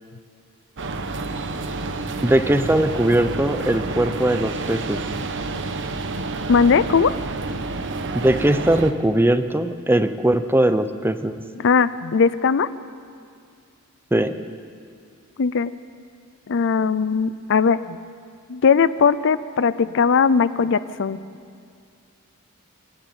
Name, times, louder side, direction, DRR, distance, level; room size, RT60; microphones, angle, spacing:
sound 1, 0.8-8.9, right 3 dB, 55° right, 1.1 m, -29 dB
voice 1, 2.2-5.0 8.1-11.3 14.1-14.3, right 1 dB, 10° right, 10 dB, 0.7 m, -20 dB
voice 2, 6.5-7.1 11.6-12.7 15.4-15.7 16.5-18.0 18.5-21.2, left 5 dB, 60° left, 15 dB, 0.5 m, -19 dB
26.5 x 11.0 x 9.0 m, 2.2 s
head